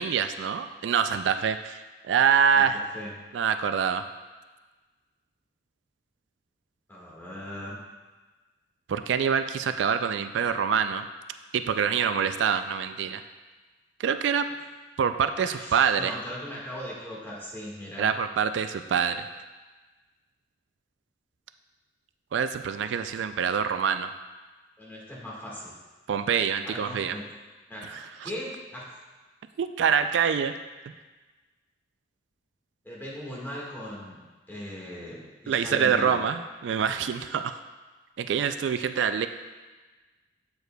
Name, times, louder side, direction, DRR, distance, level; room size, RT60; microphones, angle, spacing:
voice 1, 0.0-2.8 3.3-4.0 8.9-11.0 11.5-13.2 14.0-14.5 15.0-16.1 18.0-19.2 22.3-24.1 26.1-27.2 27.9-28.3 29.6-30.5 35.5-37.6 38.2-39.3, right 7 dB, 85° right, 10 dB, 0.3 m, -25 dB
voice 2, 2.5-3.1 6.9-7.8 15.4-18.1 24.8-25.7 26.6-27.2 27.7-28.9 32.8-34.2 34.5-36.2, left 1 dB, 10° left, -5 dB, 1.5 m, -39 dB
8.0 x 6.9 x 2.2 m, 1.3 s
head